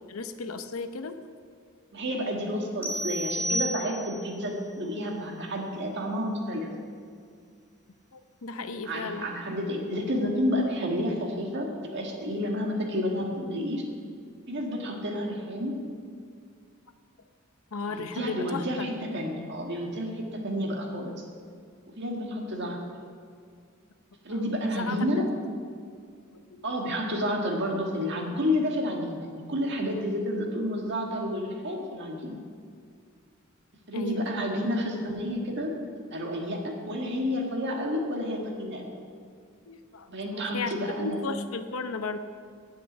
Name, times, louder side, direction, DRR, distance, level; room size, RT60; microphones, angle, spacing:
voice 1, 0.1-1.2 8.1-9.3 17.7-18.9 24.3-25.1 26.5-26.6 33.9-34.3 39.7-40.7 41.0-42.2, left 4 dB, 90° left, 9 dB, 0.7 m, -35 dB
voice 2, 1.9-6.7 8.9-13.8 14.5-15.7 18.0-21.2 22.0-22.8 24.2-25.3 26.6-32.4 33.9-35.7 36.1-38.9 40.1-41.2, equal, 55° right, 0 dB, 1.8 m, -30 dB
sound 1, 2.8-4.4, equal, 10° right, 1.1 m, -31 dB
9.6 x 7.6 x 7.9 m, 2.2 s
head